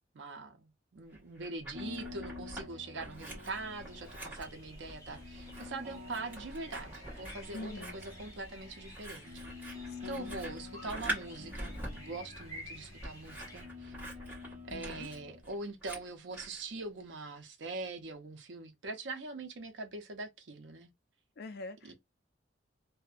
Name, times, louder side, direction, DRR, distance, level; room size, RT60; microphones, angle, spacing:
voice 1, 0.1-14.0 14.7-20.9 21.8-21.9, right 3 dB, 75° right, 0.5 m, -43 dB
Scissors, 1.1-2.7 3.0-16.6, right 1 dB, 10° right, 1.2 m, -45 dB
sound 1, 1.7-15.4, left 4 dB, 35° right, 0.8 m, -49 dB
sound 2, 3.4-13.6, left 1 dB, 20° left, 0.8 m, -52 dB
voice 2, 7.5-8.0 9.9-10.3 14.7-15.1 21.4-21.9, left 3 dB, 60° left, 0.4 m, -45 dB
2.5 x 2.1 x 2.3 m
head